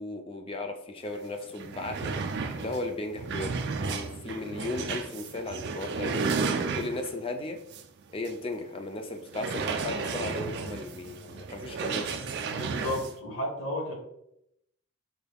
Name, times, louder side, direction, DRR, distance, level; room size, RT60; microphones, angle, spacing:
voice 1, 0.0-2.1 2.6-3.6 3.8-6.3 6.7-7.6 8.1-12.2, left 2 dB, 25° left, 6 dB, 0.4 m, -36 dB
sound 1, 1.1-1.2 1.5-7.2 7.7-7.8 8.2-8.3 9.3-13.1, right 4 dB, 50° right, 0.3 m, -33 dB
voice 2, 12.5-13.9, left 1 dB, 65° left, -1 dB, 1.2 m, -33 dB
4.6 x 2.3 x 3.4 m, 0.80 s
head